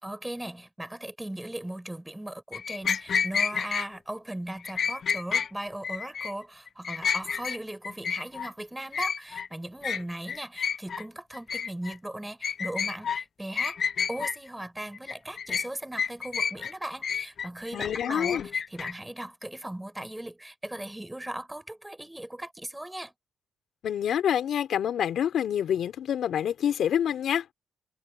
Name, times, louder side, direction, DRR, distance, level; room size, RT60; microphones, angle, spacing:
voice 1, 0.0-13.8 14.1-23.1, right 1 dB, 10° right, 6.8 m, -38 dB
sound 1, 2.5-3.9 4.6-5.5 5.8-6.3 6.7-7.6 7.8-8.5 8.9-9.5 9.8-10.0 10.3-11.0 11.3-12.0 12.4-13.2 13.6-14.4 14.9-15.7 16.0-16.7 17.0-18.9, left 7 dB, 50° left, 1.0 m, -30 dB
voice 2, 17.7-18.5 23.8-27.4, left 9 dB, 65° left, 4.2 m, -27 dB
cardioid pair, 90°, 0 cm